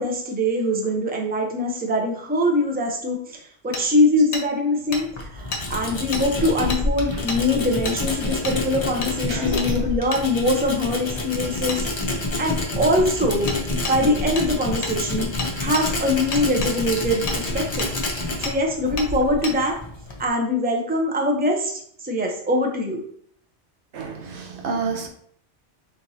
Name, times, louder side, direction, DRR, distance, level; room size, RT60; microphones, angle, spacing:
voice 1, 0.0-3.4 3.6-11.9 12.4-13.5 13.9-15.3 15.6-17.9 18.2-19.7 20.2-21.7 22.0-23.0, left 1 dB, 10° right, 0.6 m, -23 dB
Hammer, 3.7-3.8 4.3-4.5 4.9-5.0 5.5-5.6 6.1-6.2 6.7-6.8 7.3-7.4 7.8-8.0 8.4-8.6 9.0-9.1 9.6-9.7 10.1-10.2 11.7-11.8 13.5-13.6 13.8-14.0 14.4-14.5 14.8-15.0 15.4-15.9 16.3-16.7 17.3-17.4 17.8-18.1 18.4-18.6 19.0-19.1 19.4-19.6, left 3 dB, 85° left, 1.1 m, -30 dB
voice 2, 3.7-4.3 5.6-5.9 7.1-7.2 9.3-9.9 23.9-25.1, right 5 dB, 80° right, 1.0 m, -32 dB
Tools, 4.9-20.3, left 2 dB, 30° left, 0.7 m, -28 dB
4.5 x 3.7 x 2.8 m
omnidirectional pair, 1.1 m